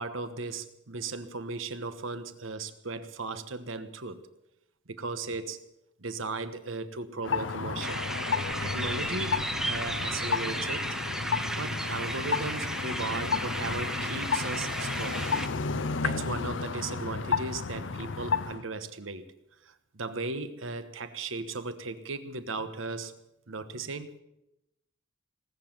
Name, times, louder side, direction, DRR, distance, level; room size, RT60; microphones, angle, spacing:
voice 1, 0.0-4.2 4.9-5.6 6.0-8.0 8.6-10.9 11.6-15.3 16.0-19.2 19.6-23.1 23.5-24.1, right 3 dB, 75° right, 10 dB, 1.3 m, -36 dB
sound 1, 7.2-18.6, left 5 dB, 65° left, 0.7 m, -32 dB
sound 2, 7.8-15.5, right 1 dB, 5° right, 0.7 m, -34 dB
19.0 x 8.1 x 9.1 m, 0.87 s
head